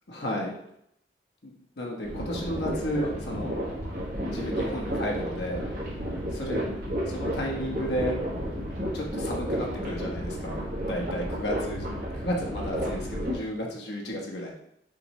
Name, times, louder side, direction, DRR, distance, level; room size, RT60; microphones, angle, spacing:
voice 1, 0.1-0.6 1.4-3.6 4.3-5.6 6.3-6.7 7.1-8.2 8.9-10.6 10.9-11.9 12.1-14.5, equal, 70° left, -1 dB, 0.9 m, -33 dB
sound 1, 2.0-13.4, equal, 50° right, 1.5 m, -32 dB
6.3 x 2.7 x 3.1 m, 0.76 s
head